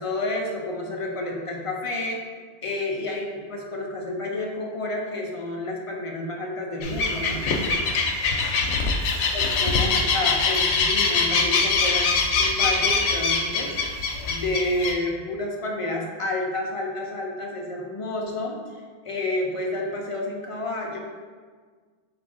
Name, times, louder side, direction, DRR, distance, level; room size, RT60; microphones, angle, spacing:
voice 1, 0.0-2.2 2.6-7.5 9.3-13.7 14.2-21.0, left 2 dB, 45° left, -1 dB, 0.5 m, -30 dB
sound 1, 6.8-14.9, left 4 dB, 85° left, 0.8 m, -23 dB
4.7 x 2.5 x 3.8 m, 1.6 s
omnidirectional pair, 1.1 m